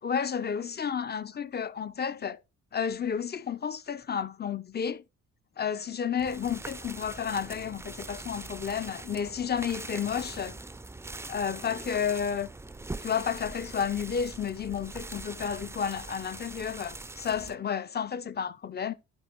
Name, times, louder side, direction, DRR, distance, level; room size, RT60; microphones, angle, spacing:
voice 1, 0.0-2.4 2.7-5.0 5.6-10.6 11.3-12.5 13.0-18.9, left 7 dB, 35° left, 0.8 m, -31 dB
sound 1, 6.2-17.6, right 2 dB, 10° right, 0.5 m, -42 dB
11.5 x 4.3 x 4.6 m
cardioid pair, 90°, 30 cm